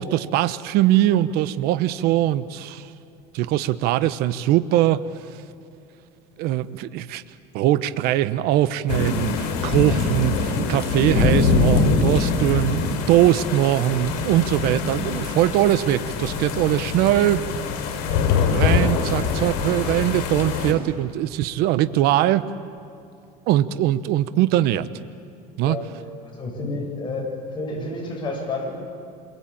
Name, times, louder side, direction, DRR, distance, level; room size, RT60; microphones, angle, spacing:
voice 1, 0.0-2.9 3.3-5.0 6.4-7.2 7.5-17.4 18.5-22.4 23.5-24.9 25.6-25.8, right 13 dB, 60° right, 13 dB, 1.0 m, -21 dB
sound 1, 8.9-20.7, left 5 dB, 75° left, 4.9 m, -23 dB
voice 2, 26.3-27.3 27.5-28.7, left 2 dB, 25° left, -2 dB, 7.5 m, -29 dB
28.0 x 22.5 x 8.8 m, 2.6 s
cardioid pair, 135°, 18 cm